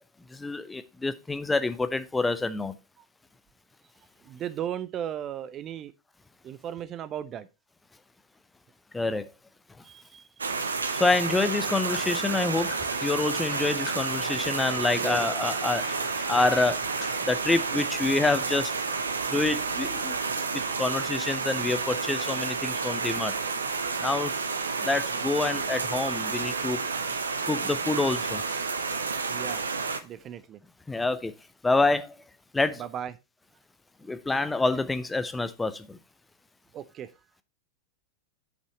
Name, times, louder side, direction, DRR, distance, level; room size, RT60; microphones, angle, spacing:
voice 1, 0.3-2.7 8.9-9.3 10.9-16.9 17.2-18.7 19.3-20.2 20.5-23.3 24.0-24.3 24.8-26.9 27.5-28.4 30.9-31.3 31.6-32.2 32.5-32.8 34.0-36.0, left 3 dB, 10° left, 0.8 m, -27 dB
voice 2, 4.2-5.9 6.4-7.5 9.8-10.5 14.9-15.2 29.3-29.6 30.0-30.6 32.8-33.1 36.7-37.1, right 10 dB, 30° right, 0.6 m, -36 dB
sound 1, 10.4-30.0, right 4 dB, 75° right, 0.9 m, -30 dB
sound 2, 11.5-17.2, left 4 dB, 45° left, 3.2 m, -44 dB
8.0 x 5.5 x 4.2 m
figure-of-eight pair, 90°, 0 cm